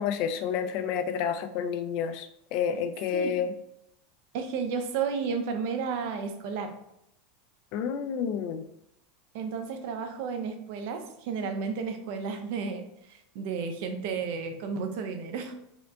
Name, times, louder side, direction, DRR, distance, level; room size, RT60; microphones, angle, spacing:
voice 1, 0.0-3.5 7.7-8.6, left 7 dB, 55° left, 9 dB, 0.4 m, -30 dB
voice 2, 4.3-6.7 9.3-15.5, right 5 dB, 65° right, 5 dB, 0.6 m, -32 dB
4.2 x 2.5 x 2.7 m, 0.80 s
supercardioid pair, 125°, 0 cm